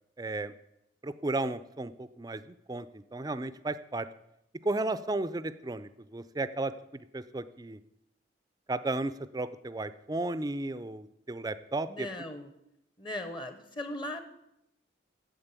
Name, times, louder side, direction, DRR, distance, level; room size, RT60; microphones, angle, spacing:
voice 1, 0.2-0.5 1.0-4.1 4.6-7.8 8.7-12.1, right 2 dB, 20° right, 14 dB, 0.4 m, -34 dB
voice 2, 11.9-12.5 13.0-14.2, left 1 dB, 25° left, 9 dB, 0.8 m, -38 dB
8.9 x 7.6 x 8.2 m, 0.83 s
head